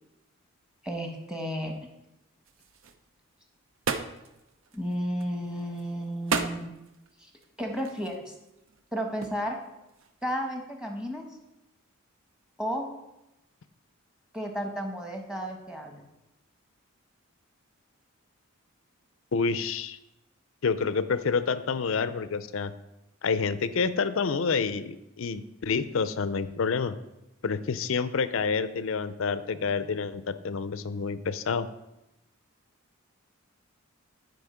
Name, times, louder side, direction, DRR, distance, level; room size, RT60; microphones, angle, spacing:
voice 1, 0.8-1.8 4.7-6.7 7.2-7.3 7.6-8.3 8.9-9.6 10.2-11.3 12.6-12.9 14.3-16.0, equal, 5° right, 2 dB, 1.1 m, -33 dB
sound 1, 2.4-10.3, right 4 dB, 65° right, 0.6 m, -37 dB
voice 2, 19.3-20.0 20.6-22.7 23.2-27.0 27.4-31.7, left 5 dB, 65° left, 13 dB, 0.5 m, -28 dB
10.5 x 5.0 x 5.0 m, 0.92 s
head